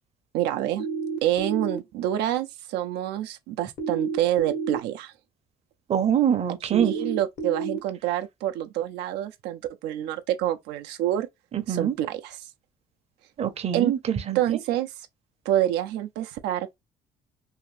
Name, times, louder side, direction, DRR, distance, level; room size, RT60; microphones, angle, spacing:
voice 1, 0.3-0.9 1.2-5.1 6.6-11.3 11.7-12.5 13.7-13.9 14.3-15.1 15.5-16.8, right 12 dB, 85° right, 0.4 m, -27 dB
sound 1, 0.8-1.8 3.8-4.8 6.8-7.8, right 5 dB, 65° left, 1.1 m, -30 dB
voice 2, 5.9-6.9 11.5-11.9 13.4-14.4, right 9 dB, 40° right, 0.6 m, -24 dB
2.6 x 2.5 x 3.1 m
cardioid pair, 110°, 17 cm